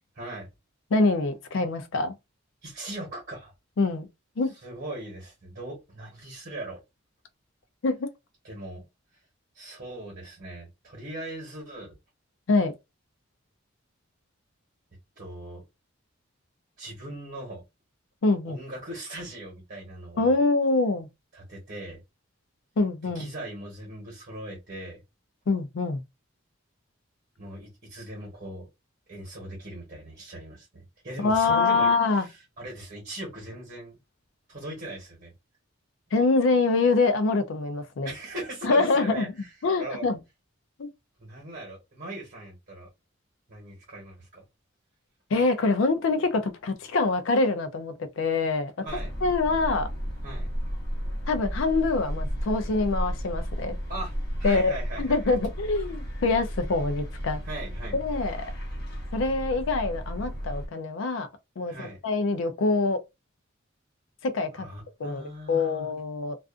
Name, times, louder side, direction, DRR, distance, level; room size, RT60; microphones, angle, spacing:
voice 1, 0.1-0.5 2.6-3.5 4.6-6.8 8.4-8.8 9.5-11.9 15.2-15.6 16.8-17.6 18.4-20.4 21.3-22.0 23.1-25.0 27.4-28.7 29.1-34.0 34.5-35.3 38.0-39.5 39.8-40.1 41.2-42.9 43.5-44.4 48.8-49.1 50.2-50.5 53.9-54.1 54.4-55.4 57.4-58.0 61.7-62.0 64.5-65.9, right 1 dB, 50° right, 1.1 m, -39 dB
voice 2, 0.9-2.2 3.8-4.1 4.4-4.5 7.8-8.1 12.5-12.7 18.2-18.6 20.2-21.1 22.8-23.3 25.5-26.0 31.2-32.3 36.1-38.1 38.6-39.3 39.6-40.2 40.8-40.9 45.3-48.9 49.2-49.9 51.3-53.8 54.4-57.4 57.9-58.4 59.1-61.3 61.6-63.0 64.2-64.7 65.0-66.4, left 3 dB, 70° left, 0.4 m, -25 dB
sound 1, 48.9-60.7, equal, 50° left, 0.8 m, -33 dB
2.4 x 2.4 x 2.4 m
head